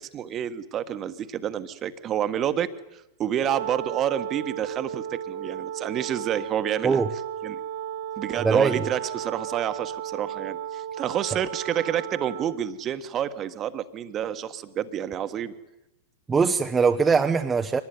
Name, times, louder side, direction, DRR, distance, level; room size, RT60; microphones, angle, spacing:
voice 1, 0.0-7.0 7.4-7.6 8.2-15.5, right 10 dB, 35° right, 1.5 m, -29 dB
Wind instrument woodwind instrument, 3.4-12.6, right 10 dB, 70° right, 2.3 m, -34 dB
voice 2, 8.4-8.8 16.3-17.8, right 5 dB, 15° right, 1.1 m, -21 dB
23.5 x 19.5 x 9.5 m
hypercardioid pair, 105°, 0 cm